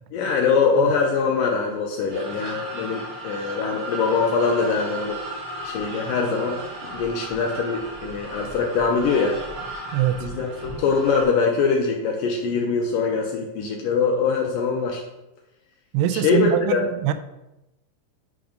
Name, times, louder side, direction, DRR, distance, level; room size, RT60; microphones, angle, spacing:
voice 1, 0.1-5.2 5.6-9.4 10.2-15.0 16.1-16.8, left 5 dB, 85° left, 1 dB, 2.0 m, -23 dB
sound 1, 2.1-11.2, right 2 dB, 70° right, 3.9 m, -35 dB
voice 2, 9.9-10.3 15.9-17.1, right 11 dB, 90° right, 11 dB, 2.6 m, -23 dB
8.8 x 3.6 x 5.0 m, 0.96 s
omnidirectional pair, 4.6 m